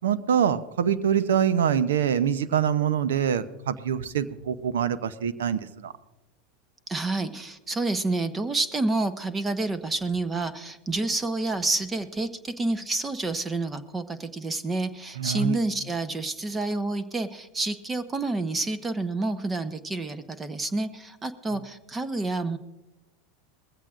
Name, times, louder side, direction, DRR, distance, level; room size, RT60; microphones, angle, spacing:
voice 1, 0.0-5.9 15.2-15.6, right 8 dB, 80° right, 14 dB, 0.7 m, -25 dB
voice 2, 6.9-22.6, right 2 dB, 20° right, 11 dB, 0.9 m, -29 dB
20.5 x 15.5 x 2.5 m, 1.0 s
hypercardioid pair, 95°, 0 cm